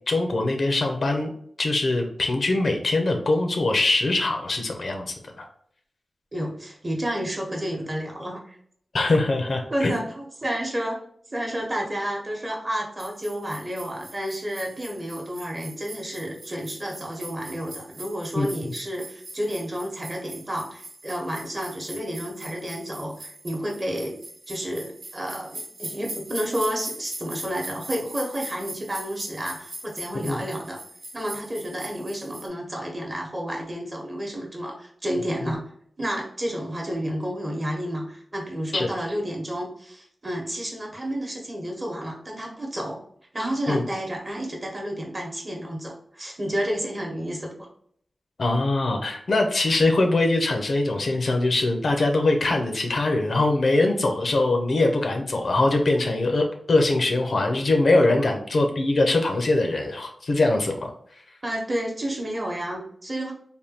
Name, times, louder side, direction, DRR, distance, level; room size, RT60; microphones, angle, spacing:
voice 1, 0.1-1.3 1.6-5.4 8.9-10.0 18.4-18.5 30.2-30.4 35.4-35.5 38.7-38.9 43.7-43.8 48.4-60.9, left 2 dB, 65° left, 3 dB, 0.5 m, -22 dB
voice 2, 6.3-8.6 9.7-11.0 11.3-24.2 24.5-30.8 31.1-35.6 36.0-43.0 43.3-47.7 61.4-63.3, equal, 30° right, 0 dB, 0.9 m, -31 dB
sound 1, 13.0-32.5, right 1 dB, 90° right, 1.2 m, -41 dB
3.4 x 2.2 x 2.8 m, 0.65 s
wide cardioid pair, 85°, 0 cm